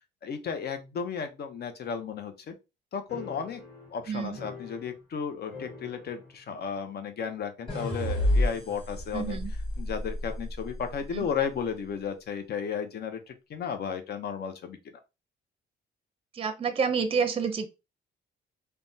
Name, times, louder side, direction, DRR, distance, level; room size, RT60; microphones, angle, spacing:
voice 1, 0.2-2.5 2.9-3.6 3.9-9.4 9.8-14.8, left 7 dB, 55° left, 0.7 m, -34 dB
sound 1, 3.1-5.2 5.5-6.5 6.8-6.9 7.7-8.5, left 3 dB, 90° left, 1.2 m, -45 dB
voice 2, 4.1-4.4 9.1-9.5 11.1-11.2 16.3-17.7, right 6 dB, 30° right, 0.5 m, -28 dB
sound 2, 7.7-10.9, left 1 dB, 25° left, 1.8 m, -29 dB
3.3 x 2.2 x 2.6 m
cardioid pair, 90°, 20 cm